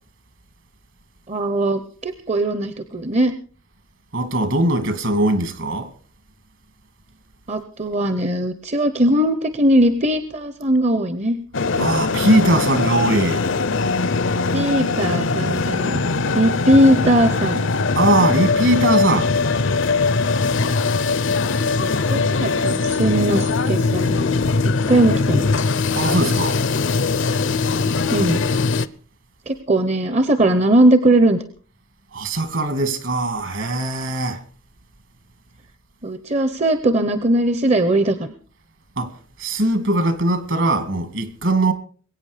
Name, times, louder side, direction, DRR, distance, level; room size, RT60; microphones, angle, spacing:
voice 1, 1.3-3.3 7.5-11.4 14.5-16.0 16.3-17.6 21.8-24.3 24.9-25.4 28.1-28.4 29.5-31.4 36.0-38.3, right 1 dB, 30° right, 0.8 m, -19 dB
voice 2, 4.1-5.9 11.8-13.4 18.0-19.3 26.0-26.6 32.1-34.4 39.0-39.1 39.4-41.7, right 1 dB, 60° right, 2.2 m, -20 dB
sound 1, 11.5-28.9, left 4 dB, 60° left, 0.6 m, -21 dB
22.0 x 8.9 x 5.0 m
head